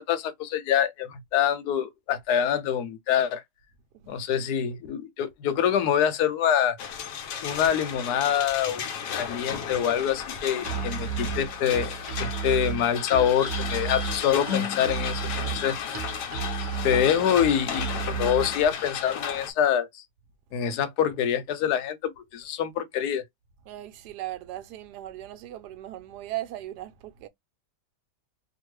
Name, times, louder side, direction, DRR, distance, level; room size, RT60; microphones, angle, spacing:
voice 1, 0.0-3.4 4.1-6.8 7.4-8.8 9.1-11.9 12.2-15.7 16.8-20.0 20.5-23.2, left 9 dB, 75° left, 1.1 m, -25 dB
sound 1, 6.8-19.5, left 7 dB, 90° left, 1.2 m, -34 dB
Musical instrument, 10.6-18.5, right 5 dB, 25° right, 0.8 m, -32 dB
voice 2, 23.7-27.3, right 14 dB, 75° right, 1.1 m, -38 dB
2.8 x 2.4 x 3.0 m
omnidirectional pair, 1.8 m